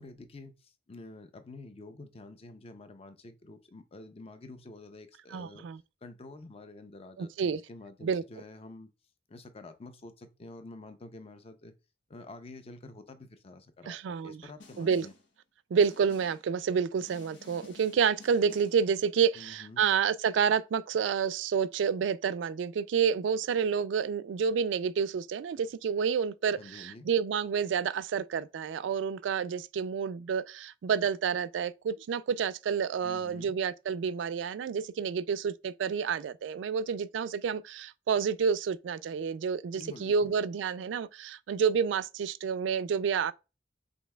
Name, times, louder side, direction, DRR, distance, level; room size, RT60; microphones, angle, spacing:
voice 1, 0.0-5.7 6.0-8.9 9.3-11.7 12.1-15.1 19.4-19.9 26.6-27.1 33.0-33.5 39.7-40.3, left 2 dB, 35° left, 0.5 m, -48 dB
voice 2, 5.3-5.8 7.2-7.6 8.0-8.2 13.9-14.4 14.8-15.1 15.7-43.3, right 6 dB, 80° right, 0.3 m, -29 dB
Snare drum, 14.6-15.3 15.8-16.5 17.0-18.9, left 3 dB, 85° left, 1.0 m, -53 dB
5.2 x 3.1 x 2.2 m
head